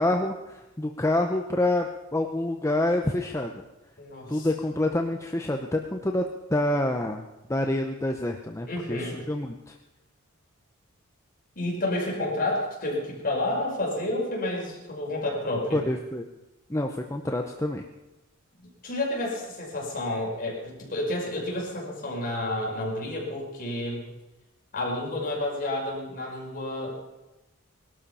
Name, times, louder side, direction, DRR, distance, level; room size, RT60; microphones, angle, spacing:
voice 1, 0.0-3.6 4.3-7.2 7.5-9.8 15.7-16.3 16.7-17.8, left 1 dB, 15° left, 3 dB, 0.8 m, -27 dB
voice 2, 4.0-4.5 8.7-9.2 11.6-15.8 18.8-24.1 24.7-26.9, left 1 dB, 40° left, -2 dB, 5.4 m, -30 dB
20.0 x 12.5 x 5.6 m, 1.0 s
head